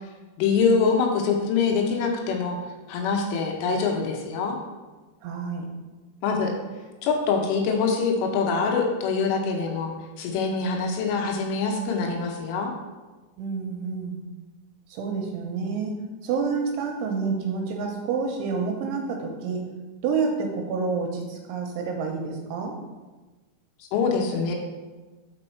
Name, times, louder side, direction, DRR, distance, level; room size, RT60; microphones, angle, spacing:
voice 1, 0.4-2.6 2.9-4.6 6.2-6.5 7.0-12.7 23.9-24.6, left 5 dB, 80° left, 2 dB, 3.2 m, -24 dB
voice 2, 5.2-5.7 13.4-14.2 14.9-16.0 16.2-19.6 20.0-22.7, right 5 dB, 80° right, 2 dB, 3.0 m, -28 dB
6.2 x 5.0 x 4.4 m, 1.2 s
omnidirectional pair, 5.8 m